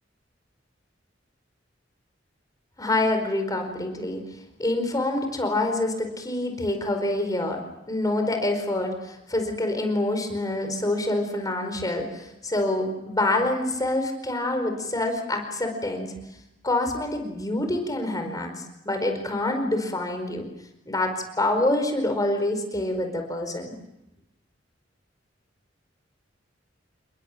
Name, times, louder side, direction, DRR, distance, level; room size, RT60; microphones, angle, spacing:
voice 1, 2.8-4.2 4.6-7.6 7.9-16.1 16.6-18.5 18.8-20.5 20.9-23.7, left 2 dB, 20° left, 5 dB, 4.7 m, -26 dB
29.0 x 21.5 x 7.5 m, 0.90 s
head